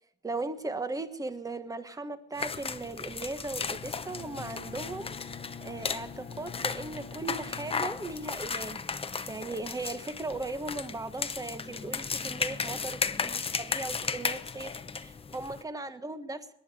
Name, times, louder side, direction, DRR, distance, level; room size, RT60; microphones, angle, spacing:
voice 1, 0.2-5.2 5.6-8.8 9.3-16.5, right 3 dB, 15° right, 10 dB, 1.4 m, -37 dB
sound 1, 2.4-15.6, left 5 dB, 30° left, 0.9 m, -35 dB
Bowed string instrument, 3.5-9.0, left 7 dB, 50° left, 1.3 m, -47 dB
21.5 x 10.5 x 4.9 m, 0.85 s
cardioid pair, 90°, 20 cm